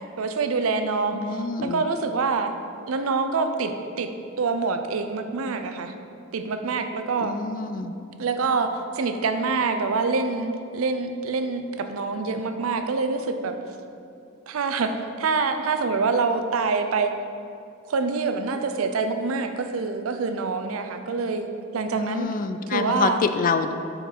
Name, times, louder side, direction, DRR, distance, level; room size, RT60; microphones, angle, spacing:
voice 1, 0.2-2.5 2.9-4.1 4.4-5.9 6.3-7.3 8.2-13.6 14.5-17.1 17.9-22.3 22.7-23.2, right 4 dB, 85° right, 8 dB, 0.5 m, -26 dB
voice 2, 1.1-1.8 7.2-7.9 22.0-23.7, left 4 dB, 40° left, 9 dB, 0.3 m, -26 dB
8.1 x 4.6 x 3.9 m, 2.5 s
head